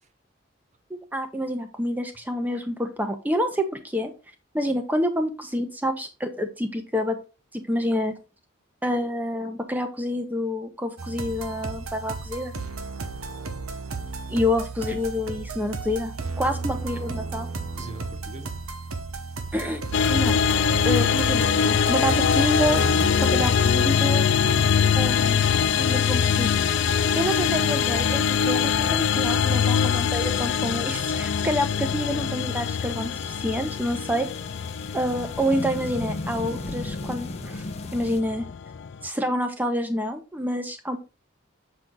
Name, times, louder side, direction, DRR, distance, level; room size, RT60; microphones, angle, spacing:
voice 1, 1.1-4.1 4.5-7.2 7.5-8.1 8.8-12.5 14.3-17.5 19.5-19.8 20.1-20.4 20.8-22.8 23.2-24.3 25.0-25.4 25.8-26.9 27.1-34.3 34.9-37.7 37.9-38.5 39.0-41.0, equal, 10° right, 1.0 m, -28 dB
sound 1, 11.0-23.5, right 4 dB, 80° right, 1.0 m, -34 dB
voice 2, 17.7-18.6 24.5-25.8, right 2 dB, 35° right, 0.9 m, -41 dB
sound 2, 19.9-39.1, left 7 dB, 55° left, 0.4 m, -23 dB
sound 3, 22.7-38.2, left 2 dB, 30° left, 0.7 m, -39 dB
7.6 x 4.4 x 3.8 m
head